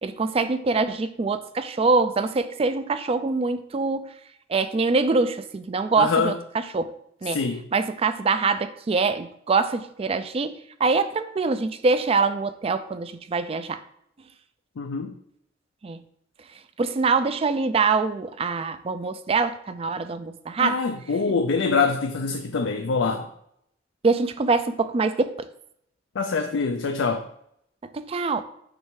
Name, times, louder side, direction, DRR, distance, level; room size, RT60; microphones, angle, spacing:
voice 1, 0.0-4.1 4.5-6.9 7.2-7.4 7.7-13.8 15.8-16.0 16.8-20.8 24.0-25.3 27.9-28.4, right 4 dB, 30° right, 0.4 m, -24 dB
voice 2, 6.0-6.3 7.3-7.6 14.8-15.1 20.6-23.3 26.2-27.3, left 4 dB, 80° left, 0.4 m, -24 dB
6.1 x 3.2 x 4.7 m
head